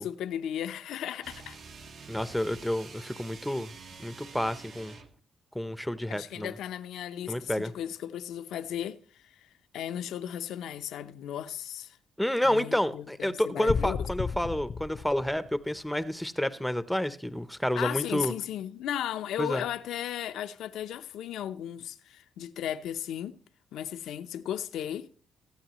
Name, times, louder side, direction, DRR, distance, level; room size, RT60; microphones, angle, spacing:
voice 1, 0.0-1.6 6.1-12.0 12.4-14.0 17.7-23.4 23.7-25.1, left 10 dB, 80° left, 0.7 m, -36 dB
sound 1, 1.2-5.2, right 4 dB, 65° right, 1.7 m, -47 dB
voice 2, 2.1-3.7 4.0-5.0 5.5-6.5 7.3-7.7 12.2-18.3 19.4-19.6, left 1 dB, 5° left, 0.7 m, -29 dB
sound 2, 13.7-15.8, left 5 dB, 40° left, 0.5 m, -33 dB
23.5 x 8.9 x 3.0 m
cardioid pair, 90°, 0 cm